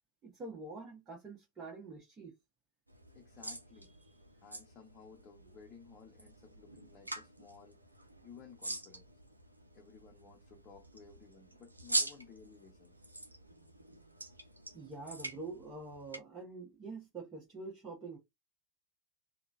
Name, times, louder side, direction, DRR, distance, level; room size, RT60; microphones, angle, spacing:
voice 1, 0.2-2.3 14.7-18.2, right 3 dB, 25° right, 1.2 m, -46 dB
sound 1, 2.9-16.2, right 1 dB, 85° right, 0.5 m, -44 dB
voice 2, 3.1-3.9 4.4-7.8 8.2-9.1 9.7-13.0, left 5 dB, 25° left, 0.9 m, -56 dB
3.7 x 2.2 x 2.5 m
figure-of-eight pair, 90°, 0 cm